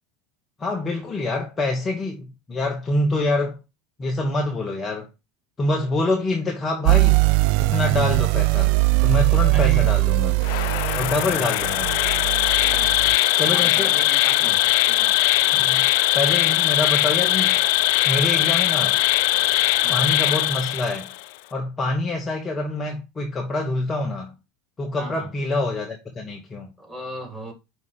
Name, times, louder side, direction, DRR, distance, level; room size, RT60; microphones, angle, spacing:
voice 1, 0.6-3.6 4.0-5.1 5.6-7.2 7.6-8.7 9.0-10.4 11.0-11.9 13.4-13.9 15.5-15.9 16.1-17.6 18.0-19.0 19.9-21.1 21.5-24.3 24.8-26.7, left 2 dB, 25° left, 1.2 m, -26 dB
sound 1, 6.9-13.2, right 26 dB, 55° right, 0.3 m, -20 dB
voice 2, 9.5-9.9 12.7-13.0 13.3-15.1 19.8-20.1 25.0-25.3 26.8-27.5, right 1 dB, 5° right, 3.1 m, -37 dB
Insect, 10.4-21.2, left 16 dB, 60° left, 0.3 m, -20 dB
5.4 x 4.2 x 5.0 m
figure-of-eight pair, 80°, 0 cm